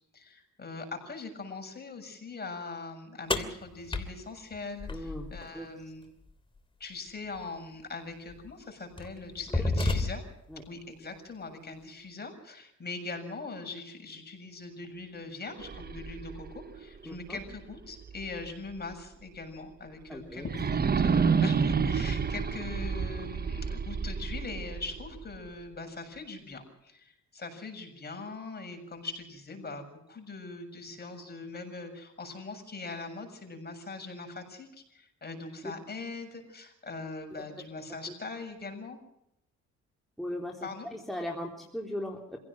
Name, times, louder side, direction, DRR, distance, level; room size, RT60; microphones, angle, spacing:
voice 1, 0.1-6.1 6.8-10.2 10.7-39.0 40.6-40.9, left 3 dB, 30° left, 5 dB, 7.4 m, -41 dB
sound 1, 3.3-5.5 7.3-7.4 8.3-8.5 9.0-10.5, left 2 dB, 15° left, 2.9 m, -31 dB
voice 2, 4.9-5.7 10.5-10.6 17.0-17.4 20.1-20.4 35.6-35.7 38.1-38.2 40.2-42.4, left 1 dB, ahead, -1 dB, 3.7 m, -38 dB
sound 2, 15.5-18.5 18.9-19.0 20.4-25.5, right 5 dB, 30° right, 1.0 m, -30 dB
26.5 x 17.0 x 6.3 m, 0.78 s
cardioid pair, 90°, 30 cm